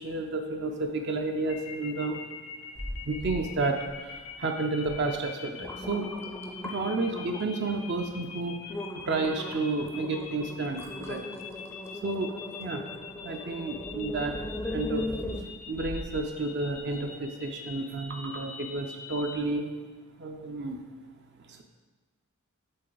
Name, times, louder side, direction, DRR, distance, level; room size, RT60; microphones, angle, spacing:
voice 1, 0.0-2.2 3.1-6.1 6.6-8.8 9.1-11.3 12.0-12.8 13.2-15.1 15.7-19.7 20.2-20.8 21.5-21.6, right 3 dB, 50° right, 4 dB, 0.5 m, -31 dB
sound 1, 1.5-19.4, left 7 dB, 80° left, 0.6 m, -44 dB
sound 2, 2.7-3.4 3.8-4.3 4.8-5.0 5.4-7.6 8.1-8.3 8.7-16.2 16.7-16.8, left 1 dB, 10° left, 0.4 m, -38 dB
7.8 x 3.8 x 3.9 m, 1.3 s
head